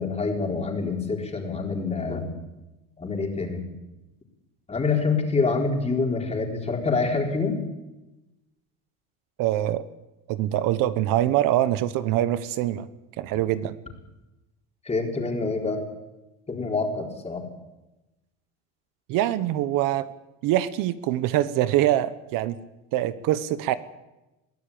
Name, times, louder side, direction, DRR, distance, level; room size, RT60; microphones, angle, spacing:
voice 1, 0.0-2.3 3.0-3.6 4.7-7.6 14.8-15.8 16.5-17.5, left 4 dB, 20° left, 1 dB, 4.3 m, -26 dB
voice 2, 9.4-9.8 10.3-12.9 13.2-13.8 19.1-20.1 20.4-22.6 22.9-23.7, right 13 dB, 65° right, 14 dB, 1.2 m, -24 dB
22.5 x 15.0 x 8.7 m, 1.0 s
cardioid pair, 125°, 36 cm